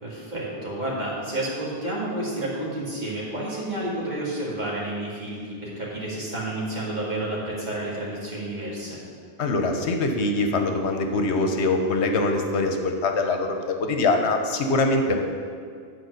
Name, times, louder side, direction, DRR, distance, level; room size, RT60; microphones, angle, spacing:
voice 1, 0.0-9.0, right 1 dB, 40° right, -6 dB, 2.1 m, -30 dB
voice 2, 9.4-15.1, left 2 dB, 80° left, 4 dB, 1.1 m, -23 dB
9.1 x 4.5 x 6.4 m, 2.2 s
omnidirectional pair, 1.1 m